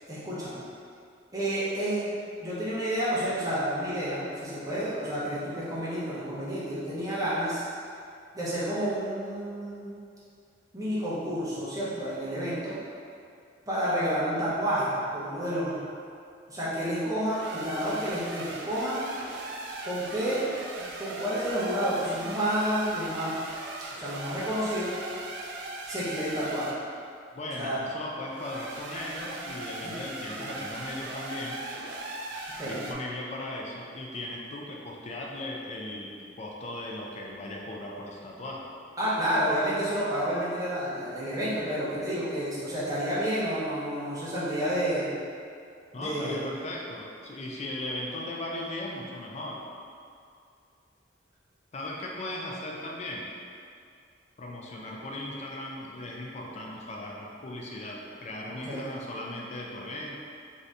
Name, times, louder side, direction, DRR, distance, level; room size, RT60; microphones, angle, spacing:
voice 1, 0.1-0.6 1.3-2.2 2.4-7.7 8.3-10.0 10.7-12.8 13.7-15.8 16.5-19.0 19.8-20.4 20.8-23.3 23.9-24.9 25.9-26.7 27.6-27.8 29.8-29.9 30.4-30.5 32.6-32.8 39.0-45.1 45.9-46.5 58.6-58.9, equal, 20° right, -10 dB, 0.8 m, -30 dB
sound 1, 17.2-26.8 28.3-32.9, right 2 dB, 60° right, 0.3 m, -39 dB
voice 2, 27.3-31.6 32.6-38.7 45.9-49.6 51.7-53.3 54.4-60.2, left 1 dB, 35° left, -2 dB, 0.4 m, -37 dB
2.6 x 2.6 x 3.3 m, 2.4 s
head